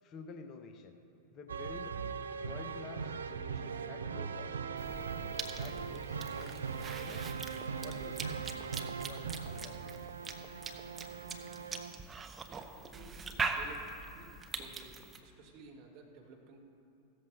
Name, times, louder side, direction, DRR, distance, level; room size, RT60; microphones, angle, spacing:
voice 1, 0.0-1.0 1.3-2.0 2.3-4.6 5.5-6.7 7.0-7.3 7.8-8.4 9.0-10.2, left 5 dB, 35° left, 7 dB, 0.8 m, -50 dB
sound 1, 1.5-12.0, right 6 dB, 70° right, 0.4 m, -40 dB
Cough / Chewing mastication, 4.8-15.2, right 4 dB, 15° right, 0.8 m, -42 dB
voice 2, 12.5-13.8 14.1-16.6, right 4 dB, 45° right, 0 dB, 1.9 m, -54 dB
16.0 x 13.5 x 2.8 m, 2.6 s
figure-of-eight pair, 90°, 0 cm